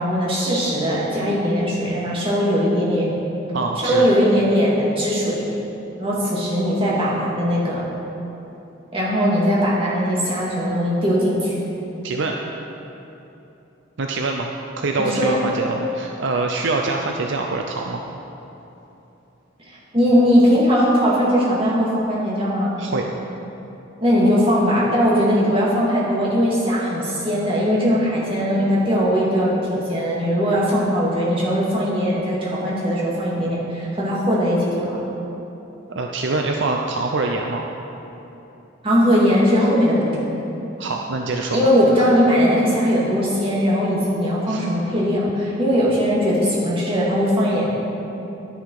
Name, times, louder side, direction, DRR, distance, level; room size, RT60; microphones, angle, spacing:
voice 1, 0.0-3.1 3.8-5.5 6.0-7.8 8.9-11.6 15.0-15.4 19.7-22.8 24.0-35.0 38.8-40.2 41.5-47.7, equal, 30° right, -7 dB, 2.6 m, -19 dB
voice 2, 3.5-4.1 12.0-12.4 14.0-18.0 22.8-23.1 35.9-37.6 40.8-41.7 42.0-42.1 44.5-44.7, right 3 dB, 60° right, 2 dB, 0.6 m, -24 dB
11.0 x 10.5 x 4.8 m, 3.0 s
head